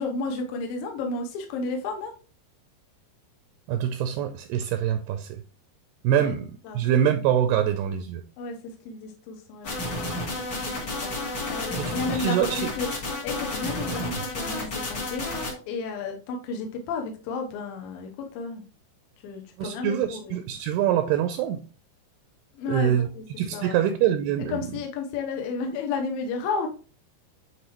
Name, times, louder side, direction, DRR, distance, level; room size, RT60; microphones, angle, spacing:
voice 1, 0.0-2.1 6.1-6.3 6.7-6.8 8.4-9.7 10.0-10.1 10.7-12.9 13.2-15.3 15.7-18.1 18.4-18.6 19.2-20.4 22.5-23.2 23.5-23.8 24.5-26.7, left 4 dB, 75° left, 3 dB, 2.4 m, -32 dB
voice 2, 3.7-5.4 6.0-8.2 11.8-12.7 14.2-14.3 19.6-21.6 22.7-23.1 23.4-24.7, right 10 dB, 80° right, 8 dB, 2.4 m, -25 dB
sound 1, 9.6-15.5, left 2 dB, 50° left, 1.3 m, -31 dB
9.5 x 4.0 x 3.0 m, 0.37 s
omnidirectional pair, 4.9 m